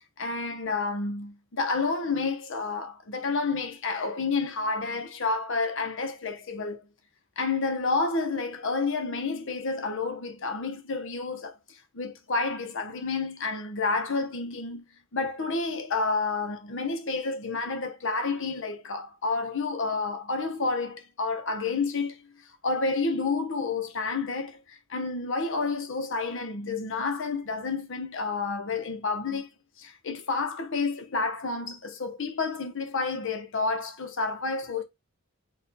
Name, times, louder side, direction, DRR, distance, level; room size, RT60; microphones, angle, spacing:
voice 1, 0.2-6.9 7.4-14.9 15.1-22.2 22.6-29.5 29.8-34.8, left 3 dB, 65° left, 0.9 m, -30 dB
4.3 x 2.6 x 4.0 m
head